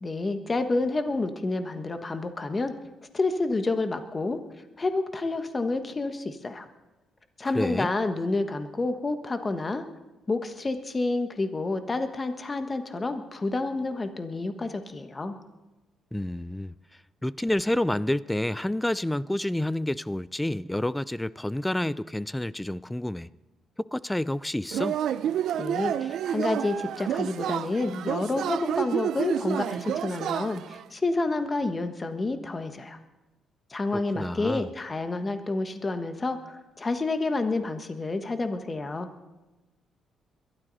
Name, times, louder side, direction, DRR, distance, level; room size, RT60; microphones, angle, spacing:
voice 1, 0.0-2.7 3.1-4.4 4.8-6.7 7.4-9.8 10.3-15.4 25.6-33.0 33.7-39.1, left 3 dB, 25° left, 1.3 m, -29 dB
voice 2, 7.4-7.9 16.1-23.3 23.8-25.0 33.9-34.7, left 1 dB, 10° left, 0.4 m, -29 dB
Yell / Cheering, 24.7-30.8, right 10 dB, 75° right, 0.5 m, -29 dB
22.0 x 12.5 x 4.1 m
cardioid pair, 90°, 0 cm